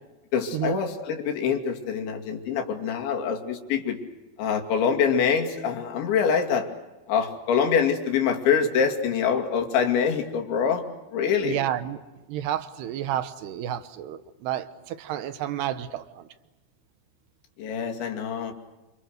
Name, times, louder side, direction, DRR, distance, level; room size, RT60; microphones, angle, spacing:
voice 1, 0.3-4.0 4.4-6.7 7.1-10.8 11.1-11.6 17.6-18.5, left 7 dB, 90° left, 4.9 m, -25 dB
voice 2, 11.4-12.0 12.3-16.3, right 11 dB, 75° right, 3.1 m, -30 dB
29.0 x 27.5 x 6.6 m
omnidirectional pair, 5.1 m